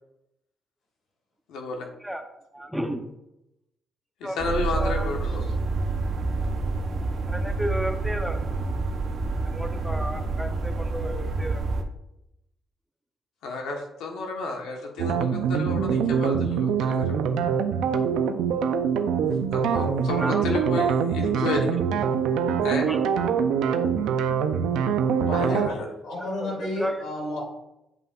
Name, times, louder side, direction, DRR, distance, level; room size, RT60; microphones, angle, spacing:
voice 1, 1.5-1.9 4.2-5.5 13.4-17.1 19.5-21.8 22.6-22.9 25.4-25.9, left 3 dB, 90° left, 2 dB, 1.3 m, -31 dB
voice 2, 2.5-3.0 4.2-4.4 4.8-5.1 7.3-8.7 9.5-11.6 20.2-20.9 22.9-23.0 26.2-26.9, equal, 5° right, 5 dB, 0.8 m, -33 dB
sound 1, 4.4-11.8, right 3 dB, 60° right, 0.8 m, -28 dB
sound 2, 15.0-25.7, right 7 dB, 90° right, 0.5 m, -24 dB
voice 3, 25.3-25.6 26.0-27.4, left 1 dB, 70° left, -1 dB, 2.5 m, -31 dB
9.3 x 5.4 x 2.5 m, 0.87 s
cardioid pair, 90°, 0 cm